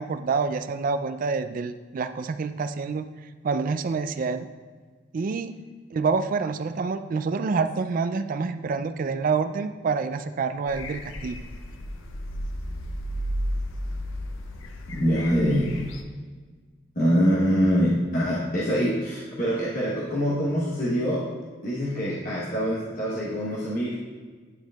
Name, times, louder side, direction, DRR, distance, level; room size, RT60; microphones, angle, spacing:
voice 1, 0.0-3.1 3.4-4.5 5.1-5.5 5.9-11.4, right 4 dB, 45° right, 10 dB, 0.3 m, -27 dB
sound 1, 10.7-16.0, equal, 80° left, 0.6 m, -33 dB
voice 2, 14.9-15.7 17.0-21.3 21.6-24.0, equal, 45° left, -7 dB, 1.0 m, -24 dB
9.7 x 4.5 x 2.3 m, 1.5 s
head